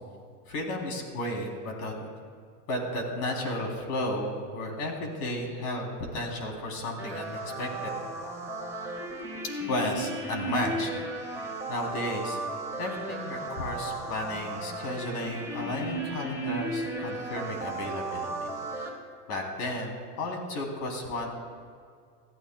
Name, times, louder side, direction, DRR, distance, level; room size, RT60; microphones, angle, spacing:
voice 1, 0.5-2.1 2.7-7.9 9.7-10.9 11.4-12.4 12.8-18.5 18.8-18.9 19.3-21.3, left 1 dB, 75° left, 1 dB, 3.6 m, -33 dB
sound 1, 7.0-18.9, right 2 dB, 5° right, 2.7 m, -35 dB
22.5 x 14.0 x 2.3 m, 2.1 s
supercardioid pair, 120°, 47 cm